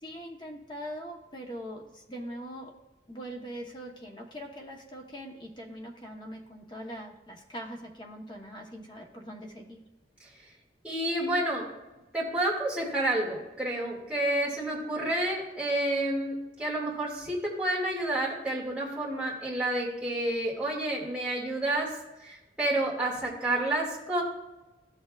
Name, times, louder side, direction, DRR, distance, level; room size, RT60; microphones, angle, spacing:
voice 1, 0.0-2.7 3.1-9.8, equal, 25° left, 1 dB, 1.0 m, -42 dB
voice 2, 10.8-11.7 12.1-21.9 22.2-24.2, right 1 dB, 5° right, -5 dB, 2.2 m, -29 dB
13.5 x 6.6 x 2.4 m, 1.0 s
head